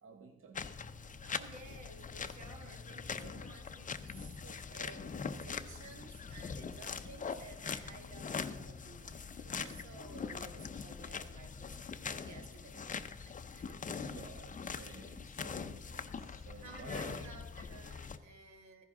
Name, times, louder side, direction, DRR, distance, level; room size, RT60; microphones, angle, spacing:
voice 1, 0.0-0.8 4.1-5.1 6.4-6.5 9.6-9.8 14.0-17.3, right 4 dB, 45° right, 5 dB, 1.0 m, -54 dB
sound 1, 0.5-18.2, left 5 dB, 25° left, 0.6 m, -43 dB
voice 2, 1.2-4.2 4.7-13.9 16.5-18.8, right 3 dB, 70° right, 5 dB, 1.6 m, -55 dB
14.0 x 11.0 x 3.7 m, 1.1 s
cardioid pair, 90°, 30 cm